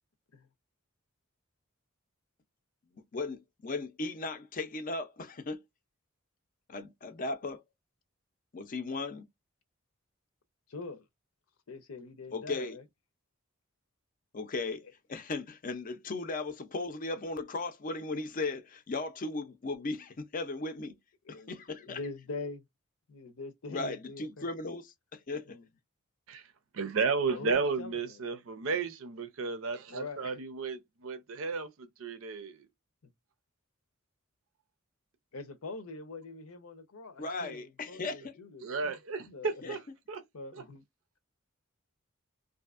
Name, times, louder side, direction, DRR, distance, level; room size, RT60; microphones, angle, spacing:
voice 1, 3.1-5.6 6.7-7.6 8.5-9.3 12.3-12.8 14.3-20.9 21.3-22.0 23.7-25.6 37.2-38.4 39.6-39.8, left 3 dB, 40° left, 0.5 m, -37 dB
voice 2, 10.7-11.0 11.7-12.8 21.2-22.6 23.1-24.5 25.5-25.7 27.3-28.4 28.7-28.8 29.9-30.4 33.0-33.1 35.3-38.9 39.3-39.6 40.3-40.8, left 3 dB, 85° left, 0.7 m, -44 dB
voice 3, 26.7-32.7 38.6-39.8 40.1-40.2 40.5-40.6, right 4 dB, 70° right, 0.5 m, -33 dB
2.7 x 2.5 x 2.4 m
head